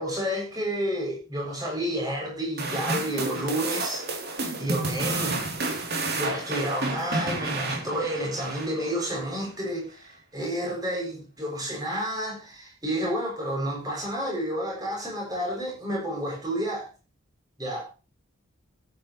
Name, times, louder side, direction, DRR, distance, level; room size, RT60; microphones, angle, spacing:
voice 1, 0.0-4.1 4.3-5.4 6.2-16.9 17.6-17.9, equal, 20° right, -2 dB, 7.1 m, -30 dB
sound 1, 2.6-9.1, right 3 dB, 50° right, 3.2 m, -30 dB
15.5 x 9.7 x 3.2 m, 0.32 s
head